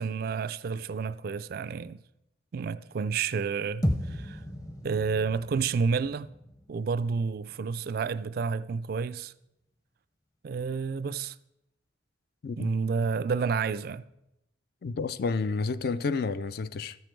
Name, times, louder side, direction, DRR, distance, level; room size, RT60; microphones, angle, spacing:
voice 1, 0.0-2.0 2.5-4.4 4.8-6.3 6.7-9.3 10.4-11.4 12.6-14.0, right 5 dB, 55° right, 0.3 m, -30 dB
sound 1, 3.8-8.2, equal, 20° left, 0.7 m, -35 dB
voice 2, 14.8-17.0, left 4 dB, 55° left, 0.4 m, -30 dB
13.0 x 7.0 x 4.5 m
head